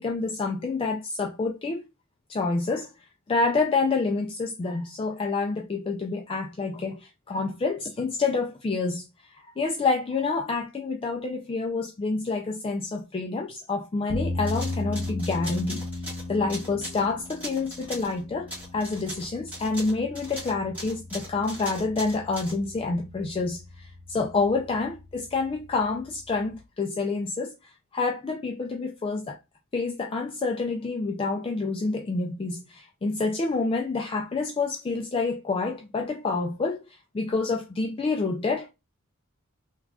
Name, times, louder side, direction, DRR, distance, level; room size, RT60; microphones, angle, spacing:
voice 1, 0.0-1.8 2.3-2.9 3.3-9.0 9.6-15.8 16.3-27.5 27.9-29.4 29.7-38.7, left 3 dB, 25° left, 0.3 m, -28 dB
sound 1, 14.1-26.6, left 2 dB, 75° left, 0.5 m, -37 dB
sound 2, 14.4-18.2 18.5-22.6, equal, 10° right, 1.7 m, -39 dB
3.4 x 2.3 x 2.3 m
head